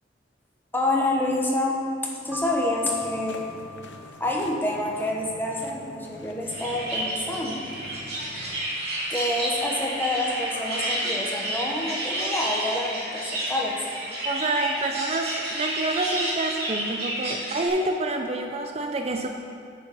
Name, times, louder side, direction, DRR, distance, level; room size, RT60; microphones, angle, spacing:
voice 1, 0.7-3.5 4.2-7.7 9.1-13.8, left 1 dB, 10° left, -2 dB, 1.2 m, -27 dB
Keyboard (musical), 2.3-4.9, left 2 dB, 10° right, 1.1 m, -40 dB
sound 1, 2.8-8.7, left 2 dB, 90° left, 0.8 m, -45 dB
sound 2, 6.5-17.7, right 1 dB, 60° right, 2.8 m, -30 dB
voice 2, 14.2-19.3, right 2 dB, 35° right, 4 dB, 0.5 m, -28 dB
9.3 x 7.4 x 5.3 m, 2.4 s
head